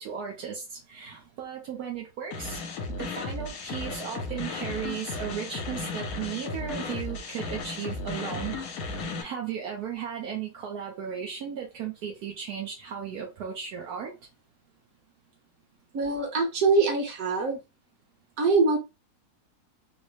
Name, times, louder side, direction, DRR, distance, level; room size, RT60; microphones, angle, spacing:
voice 1, 0.0-2.6 3.0-14.1, right 8 dB, 75° right, 1.2 m, -36 dB
sound 1, 2.3-9.2, left 3 dB, 70° left, 1.2 m, -35 dB
voice 2, 15.9-17.6 18.4-18.8, right 3 dB, 60° right, 1.4 m, -23 dB
3.9 x 2.1 x 3.0 m
omnidirectional pair, 1.7 m